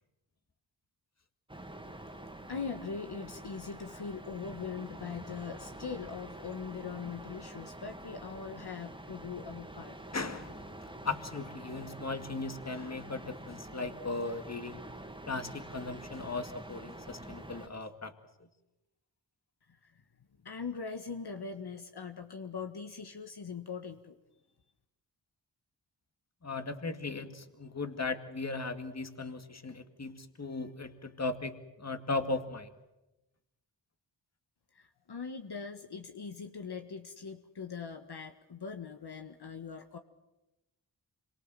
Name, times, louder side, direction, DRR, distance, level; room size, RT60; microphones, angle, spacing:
sound 1, 1.5-17.7, right 1 dB, 10° right, 2.7 m, -47 dB
voice 1, 2.5-10.0 19.7-20.0 20.4-24.2 34.7-40.0, left 5 dB, 60° left, 6 dB, 1.7 m, -41 dB
voice 2, 10.1-10.6 11.0-14.8 15.3-18.1 26.4-32.7, left 3 dB, 35° left, 8 dB, 2.3 m, -37 dB
26.5 x 23.5 x 7.7 m, 0.97 s
cardioid pair, 65°, 44 cm